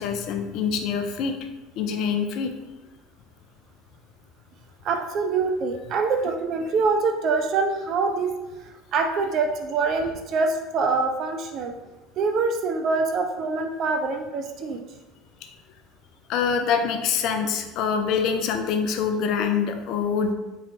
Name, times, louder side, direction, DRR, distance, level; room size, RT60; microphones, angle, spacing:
voice 1, 0.0-1.3 1.8-2.5 16.3-20.3, left 6 dB, 55° left, 5 dB, 0.3 m, -25 dB
voice 2, 4.8-8.3 8.9-11.7 12.2-14.8, right 4 dB, 50° right, 5 dB, 0.3 m, -24 dB
4.1 x 3.1 x 2.6 m, 1.1 s
hypercardioid pair, 70°, 0 cm